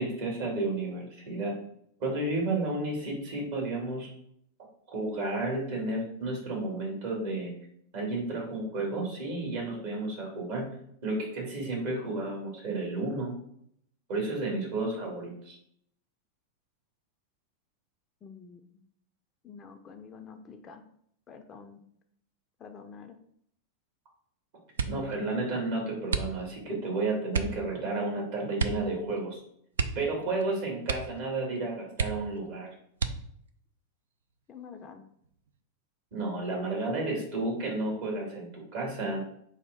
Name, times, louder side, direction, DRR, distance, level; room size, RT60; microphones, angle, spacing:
voice 1, 0.0-1.5 2.0-4.1 4.9-7.5 7.9-10.7 11.0-13.3 14.1-15.6 24.9-29.4 30.0-32.7 36.1-39.2, right 2 dB, 50° right, -2 dB, 1.9 m, -32 dB
voice 2, 18.2-18.6 19.4-20.8 21.3-21.8 22.6-23.2 34.5-35.0, left 6 dB, 25° left, 6 dB, 0.4 m, -47 dB
sound 1, 24.7-25.2 26.1-26.7 27.3-27.6 28.6-28.9 29.2-29.3 29.7-30.5 30.8-31.3 31.6-31.7 31.9-32.5 32.9-33.5 34.2-34.8 35.2-35.6, right 5 dB, 65° right, 0.3 m, -32 dB
4.1 x 2.6 x 4.7 m, 0.68 s
figure-of-eight pair, 90°, 0 cm